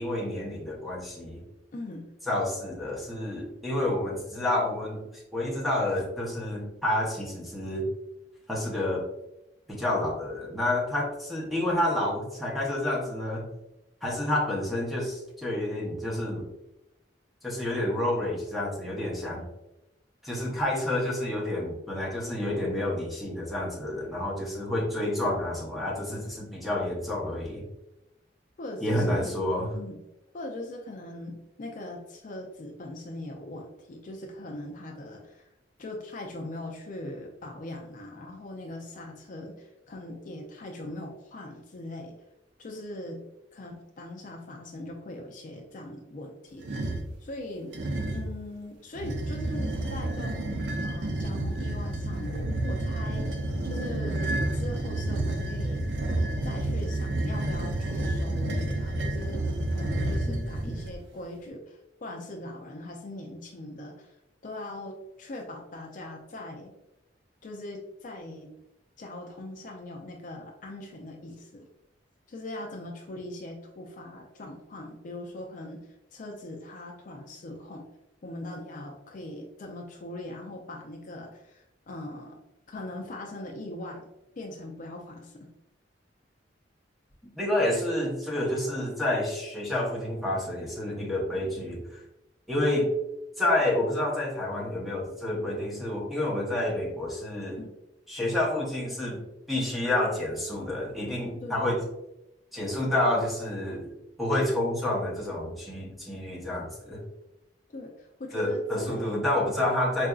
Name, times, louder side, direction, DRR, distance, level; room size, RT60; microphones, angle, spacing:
voice 1, 0.0-1.4 2.3-7.9 8.5-9.0 9.7-13.5 14.0-16.5 17.4-19.4 20.2-27.6 28.8-29.7 60.3-60.7 87.4-92.0 92.5-92.9 93.4-97.6 98.1-99.2 99.5-101.8 102.5-103.9 104.2-107.0 108.3-110.1, left 1 dB, ahead, -3 dB, 0.8 m, -29 dB
voice 2, 1.7-2.1 19.3-19.5 28.6-29.4 29.7-30.0 30.3-35.5 35.8-42.1 42.6-43.2 43.5-46.9 47.2-47.7 48.1-53.4 53.6-55.9 56.4-64.2 64.4-66.7 67.4-68.5 69.0-71.7 72.3-75.8 76.1-77.8 78.2-82.4 82.7-84.1 84.4-85.5 97.6-97.7 101.4-101.7 107.7-109.2 109.6-109.7, left 1 dB, 45° left, 1 dB, 0.4 m, -40 dB
sound 1, 46.6-47.1 47.7-48.4 48.9-61.0, right 1 dB, 80° right, 0.6 m, -30 dB
4.6 x 2.5 x 2.3 m, 0.90 s
head